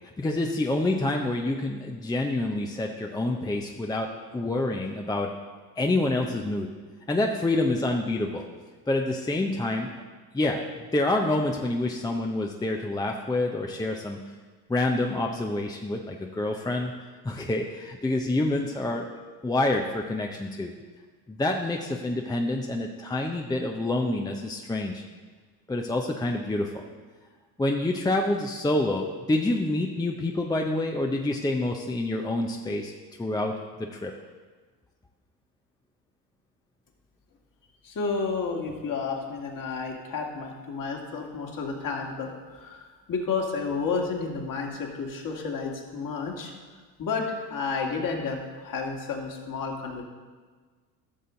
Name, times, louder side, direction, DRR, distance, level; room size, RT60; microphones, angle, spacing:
voice 1, 0.2-4.1 4.3-5.3 5.8-6.7 7.1-8.4 8.9-10.0 10.3-10.6 10.9-14.2 14.7-16.9 17.2-19.1 19.4-20.7 21.3-25.0 25.7-26.8 27.6-32.9 33.2-33.5 33.8-34.1, left 2 dB, 10° left, 2 dB, 0.7 m, -27 dB
voice 2, 37.8-46.5 47.0-50.0, left 4 dB, 40° left, 0 dB, 2.1 m, -31 dB
14.0 x 6.7 x 3.8 m, 1.4 s
hypercardioid pair, 60°, 48 cm